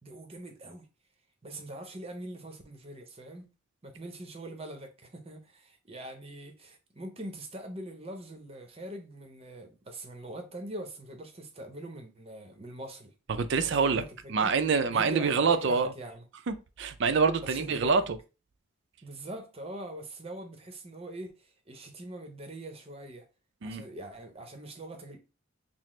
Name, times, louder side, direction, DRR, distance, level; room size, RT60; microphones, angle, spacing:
voice 1, 0.0-0.9 1.4-3.5 3.8-13.1 13.6-14.5 14.8-16.2 17.4-18.1 19.0-23.2 23.6-25.2, right 1 dB, 30° right, 0.8 m, -43 dB
voice 2, 13.3-14.0 14.3-15.9 16.5-18.2 23.6-23.8, right 5 dB, 60° right, 0.4 m, -26 dB
5.8 x 2.0 x 3.1 m
head